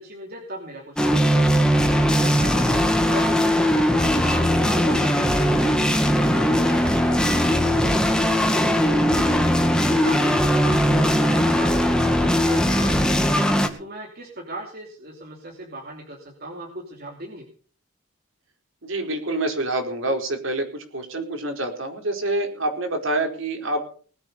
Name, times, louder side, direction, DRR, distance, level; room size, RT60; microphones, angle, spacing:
voice 1, 0.0-2.8 3.1-6.0 6.3-13.4 13.8-17.5, right 1 dB, 45° right, 0 dB, 2.9 m, -38 dB
sound 1, 1.0-13.7, equal, 5° left, 1.9 m, -19 dB
voice 2, 18.8-20.7 20.9-23.9, right 2 dB, 60° right, 4 dB, 4.4 m, -26 dB
20.5 x 8.2 x 6.7 m, 0.43 s
head